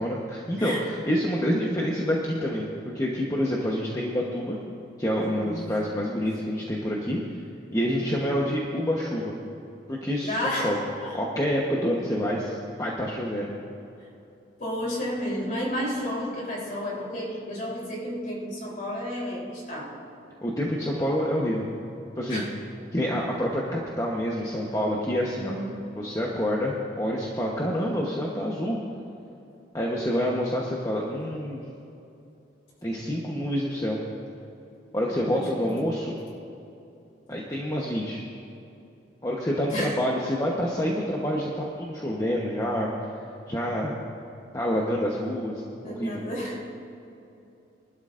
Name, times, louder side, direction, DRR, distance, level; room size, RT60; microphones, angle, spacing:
voice 1, 0.0-2.7 2.9-4.6 5.0-7.2 7.7-9.3 9.9-10.8 11.1-13.5 20.4-21.7 22.2-22.4 22.9-25.6 26.0-28.8 29.7-31.7 32.8-34.0 34.9-36.1 37.3-38.2 39.2-42.9 43.5-44.0 44.5-46.2, equal, 20° left, -3 dB, 1.0 m, -27 dB
voice 2, 5.2-5.8 10.2-11.2 14.0-14.1 14.6-20.1 22.3-22.7 25.4-26.1 35.1-35.8 39.7-40.1 45.8-46.7, equal, 45° left, -4 dB, 3.6 m, -32 dB
23.0 x 12.0 x 2.6 m, 2.8 s
head